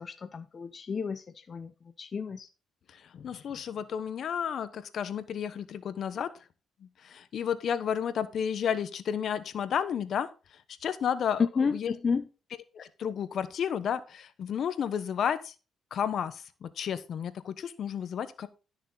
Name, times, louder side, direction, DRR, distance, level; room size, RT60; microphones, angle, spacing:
voice 1, 0.0-1.7 2.0-2.5 11.4-12.3, left 5 dB, 40° left, 9 dB, 0.8 m, -31 dB
voice 2, 2.9-6.3 6.8-11.4 11.7-11.9 12.7-15.5 15.9-18.5, left 8 dB, 60° left, 13 dB, 1.1 m, -32 dB
12.5 x 6.5 x 4.0 m, 0.32 s
cardioid pair, 90°, 0 cm